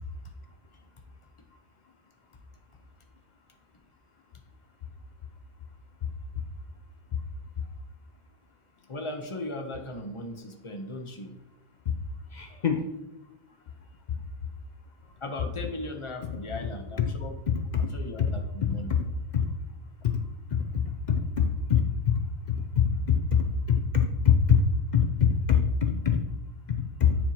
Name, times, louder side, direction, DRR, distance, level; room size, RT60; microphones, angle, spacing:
voice 1, 8.9-11.3 15.2-17.3 17.8-18.9, left 1 dB, 30° left, 4 dB, 0.7 m, -37 dB
voice 2, 12.3-12.8 16.2-16.4 17.7-17.9 18.2-18.3 18.9-19.1 19.3-19.5 20.5-20.6 21.1-21.8 22.8-24.6 24.9-26.2 26.7-27.2, left 7 dB, 65° left, 6 dB, 0.4 m, -24 dB
9.6 x 4.4 x 2.8 m, 0.99 s
omnidirectional pair, 1.3 m